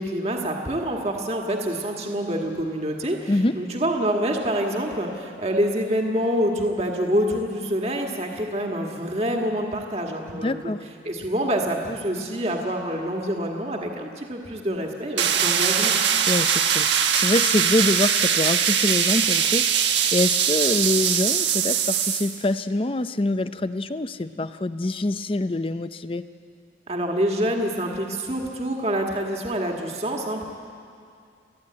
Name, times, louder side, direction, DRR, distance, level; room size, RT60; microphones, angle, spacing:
voice 1, 0.0-10.7 11.0-16.0 26.9-30.5, equal, 35° right, 1 dB, 1.7 m, -26 dB
voice 2, 10.3-10.8 16.3-26.2, left 2 dB, 30° left, 12 dB, 0.5 m, -25 dB
sound 1, 15.2-22.4, right 8 dB, 85° right, 1.3 m, -21 dB
29.5 x 11.0 x 8.7 m, 2.3 s
head